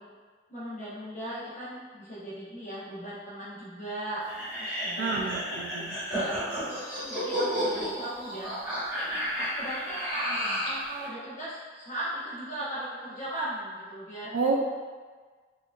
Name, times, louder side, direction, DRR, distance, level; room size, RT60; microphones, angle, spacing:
voice 1, 0.5-4.3 4.6-5.4 5.7-6.3 6.7-8.5 8.9-9.3 9.6-10.3 10.6-14.3, right 1 dB, 45° left, -8 dB, 0.8 m, -38 dB
sound 1, 4.3-10.8, equal, 10° right, 1.2 m, -31 dB
voice 2, 5.0-5.9 14.3-14.5, right 4 dB, 85° right, -1 dB, 0.3 m, -29 dB
4.4 x 2.5 x 2.4 m, 1.5 s
head